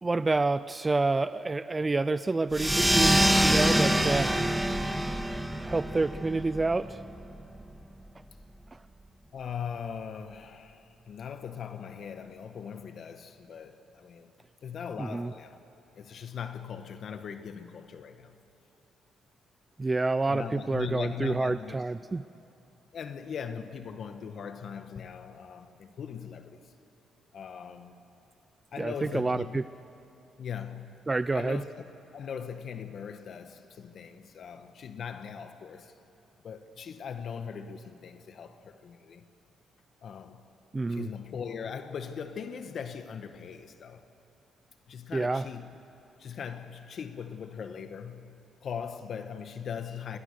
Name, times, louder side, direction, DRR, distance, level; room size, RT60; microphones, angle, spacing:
voice 1, 0.0-4.4 5.6-7.0 8.7-8.8 15.0-15.3 19.8-22.2 28.8-29.7 31.1-31.6 40.7-41.1 45.1-45.5, right 3 dB, 20° right, 0.4 m, -28 dB
sound 1, 2.5-7.6, right 1 dB, 5° right, 1.5 m, -26 dB
voice 2, 9.3-14.3 14.6-15.6 16.0-18.3 20.3-21.8 22.9-26.6 27.3-28.0 28.7-29.6 30.4-30.9 31.3-31.7 32.1-35.9 36.4-39.3 40.0-40.4 40.9-44.0 44.9-45.7 46.2-48.3 48.6-50.2, left 7 dB, 60° left, 1.3 m, -40 dB
28.5 x 21.5 x 6.6 m
cardioid pair, 90°, 0 cm